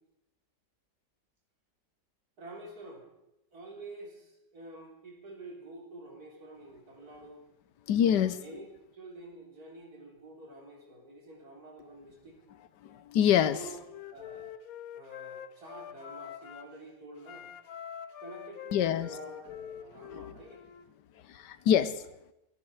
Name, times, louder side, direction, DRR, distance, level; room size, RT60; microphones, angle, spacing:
voice 1, 2.4-3.1 3.5-7.4 8.1-12.4 13.4-14.6 14.9-17.5 18.2-20.6, right 2 dB, 55° right, 0 dB, 3.7 m, -48 dB
voice 2, 7.9-8.4 12.8-13.6 18.7-19.1 21.3-22.0, left 9 dB, 80° left, 14 dB, 1.3 m, -25 dB
Wind instrument woodwind instrument, 13.3-16.7 17.2-20.9, left 9 dB, 60° left, 1.2 m, -45 dB
24.5 x 9.8 x 4.7 m, 0.87 s
omnidirectional pair, 1.9 m